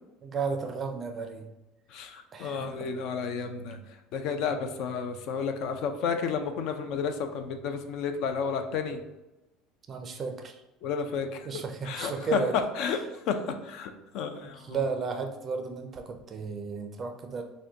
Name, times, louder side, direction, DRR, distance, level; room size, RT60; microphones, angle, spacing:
voice 1, 0.2-1.5 2.3-2.9 9.9-10.5 11.5-12.6 14.6-17.4, right 5 dB, 25° right, 5 dB, 0.4 m, -33 dB
voice 2, 1.9-3.8 4.1-9.0 10.8-12.4 12.8-14.8, left 6 dB, 55° left, 7 dB, 0.4 m, -32 dB
6.0 x 2.2 x 2.7 m, 0.99 s
cardioid pair, 160°, 0 cm